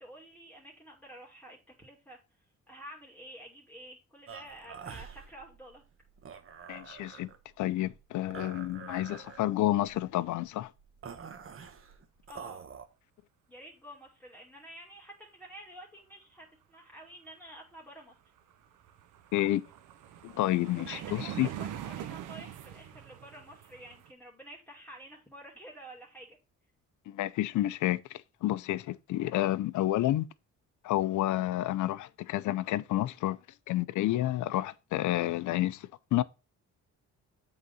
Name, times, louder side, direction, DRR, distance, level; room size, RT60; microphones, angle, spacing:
voice 1, 0.0-2.2 2.7-5.8 12.3-12.6 13.5-18.2 20.8-26.4 31.0-31.2, right 1 dB, 5° left, 2.7 m, -50 dB
sound 1, 4.3-12.9, right 6 dB, 45° right, 1.2 m, -47 dB
voice 2, 6.7-7.3 7.6-10.7 19.3-19.6 20.2-21.5 27.1-30.3 30.8-33.4 33.7-36.2, left 15 dB, 75° left, 0.6 m, -30 dB
sound 2, 18.0-18.1 18.4-24.1, right 10 dB, 85° right, 1.0 m, -43 dB
8.2 x 3.9 x 5.5 m
cardioid pair, 90°, 30 cm